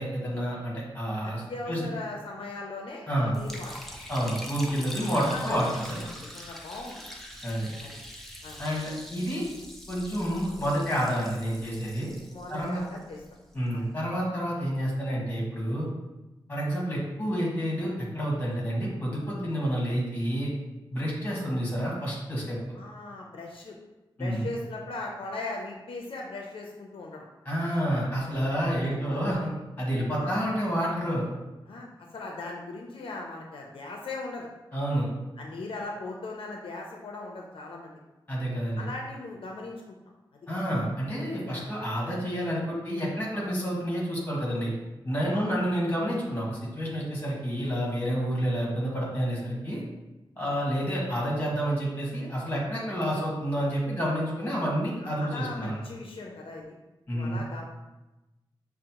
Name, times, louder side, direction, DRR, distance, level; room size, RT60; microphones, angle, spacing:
voice 1, 0.0-1.9 3.1-3.4 4.1-6.0 7.4-7.7 8.6-9.4 9.9-12.1 12.5-12.8 13.5-15.9 16.5-20.5 20.9-22.6 24.2-24.4 27.4-29.5 29.8-31.2 34.7-35.1 38.3-38.9 40.5-44.7 45.0-49.8 50.4-55.8 57.1-57.4, equal, 20° left, -5 dB, 1.3 m, -29 dB
voice 2, 1.2-3.8 5.0-7.0 7.8-8.0 8.4-8.6 12.3-13.2 13.7-13.9 22.7-23.8 24.2-27.3 28.6-29.3 30.2-30.5 31.7-34.5 35.4-38.0 38.8-40.0 41.5-41.7 45.3-45.6 50.4-50.6 55.0-56.8 57.1-57.6, left 2 dB, 80° left, 0 dB, 0.5 m, -39 dB
Liquid, 3.3-13.5, equal, 5° left, 0.4 m, -44 dB
6.0 x 2.0 x 2.8 m, 1.0 s
wide cardioid pair, 160°, 9 cm